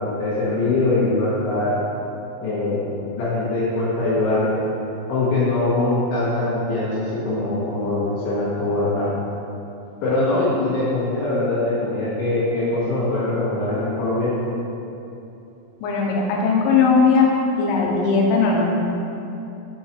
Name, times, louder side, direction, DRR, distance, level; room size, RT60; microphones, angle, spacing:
voice 1, 0.0-1.8 2.4-2.8 3.2-4.6 5.1-9.1 10.0-14.3, left 2 dB, 70° left, -9 dB, 3.5 m, -22 dB
voice 2, 15.8-17.3 17.6-18.7, left 5 dB, 90° left, -1 dB, 3.4 m, -18 dB
7.0 x 5.5 x 4.5 m, 2.8 s
omnidirectional pair, 5.6 m